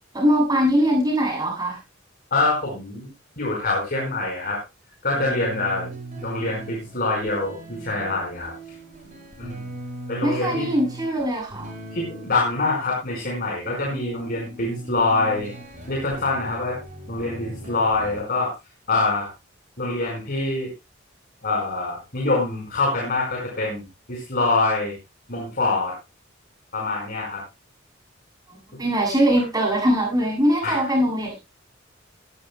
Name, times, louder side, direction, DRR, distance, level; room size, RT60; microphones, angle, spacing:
voice 1, 0.1-1.8 10.2-11.7 28.5-31.4, equal, 20° right, -1 dB, 7.2 m, -21 dB
voice 2, 2.3-3.1 3.4-4.6 5.0-8.5 9.4-9.6 10.1-10.7 11.9-15.5 15.9-16.8 17.1-18.5 18.9-19.3 19.8-20.7 21.4-23.8 24.1-25.0 25.3-25.9 26.7-27.4 30.6-30.9, left 3 dB, 50° left, -2 dB, 4.7 m, -25 dB
sound 1, 5.1-13.0 13.8-18.2, right 1 dB, 40° right, 6.4 m, -39 dB
20.0 x 12.5 x 2.2 m, 0.25 s
head